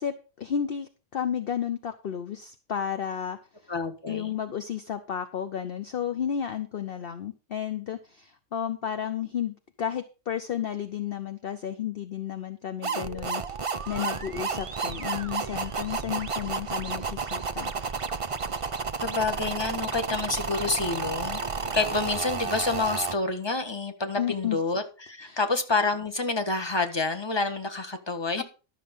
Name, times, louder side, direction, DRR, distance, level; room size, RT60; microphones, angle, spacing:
voice 1, 0.0-3.7 4.1-13.4 13.9-17.7 24.2-24.6 25.2-25.4 28.4-28.5, left 9 dB, 50° left, 0.9 m, -32 dB
voice 2, 3.7-4.3 19.0-28.4, left 3 dB, 20° left, 1.4 m, -28 dB
sound 1, 12.8-23.1, right 5 dB, 35° right, 0.6 m, -32 dB
12.5 x 6.7 x 5.3 m
omnidirectional pair, 1.3 m